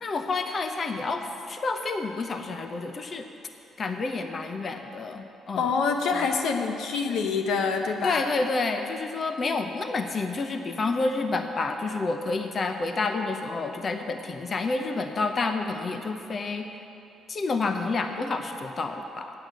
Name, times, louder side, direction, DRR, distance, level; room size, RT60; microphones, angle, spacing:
voice 1, 0.0-3.3 3.8-5.7 6.1-6.3 8.0-16.6 17.3-19.3, left 3 dB, 40° left, 6 dB, 0.7 m, -29 dB
voice 2, 5.6-8.3, left 5 dB, 80° left, 4 dB, 0.9 m, -26 dB
9.0 x 7.8 x 8.1 m, 2.8 s
cardioid pair, 90°, 0 cm